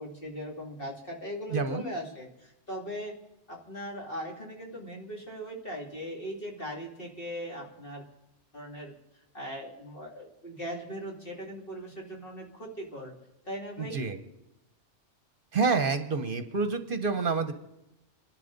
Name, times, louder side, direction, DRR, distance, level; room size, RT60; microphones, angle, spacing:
voice 1, 0.0-3.1 3.5-8.0 8.5-13.1 13.5-14.0, equal, 50° left, -1 dB, 2.7 m, -39 dB
voice 2, 1.5-1.9 13.8-14.2 15.5-17.5, right 4 dB, 55° right, 9 dB, 1.0 m, -28 dB
27.5 x 11.5 x 3.9 m, 0.90 s
omnidirectional pair, 1.2 m